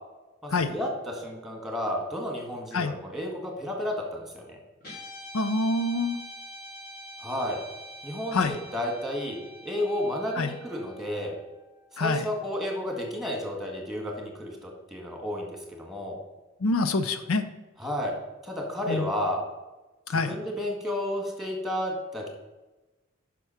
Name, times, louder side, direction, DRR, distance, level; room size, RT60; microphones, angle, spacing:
voice 1, 0.4-4.6 7.2-7.6 8.0-11.3 11.9-16.2 17.8-18.1 18.4-19.4 20.1-22.3, left 1 dB, ahead, 1 dB, 1.8 m, -32 dB
Guitar, 4.8-13.3, equal, 45° left, 3.1 m, -46 dB
voice 2, 5.3-6.2 8.3-8.6 10.4-10.5 12.0-12.2 16.6-17.4 18.9-19.1 20.1-20.3, left 3 dB, 80° left, 10 dB, 0.6 m, -26 dB
8.2 x 6.0 x 5.8 m, 1.1 s
head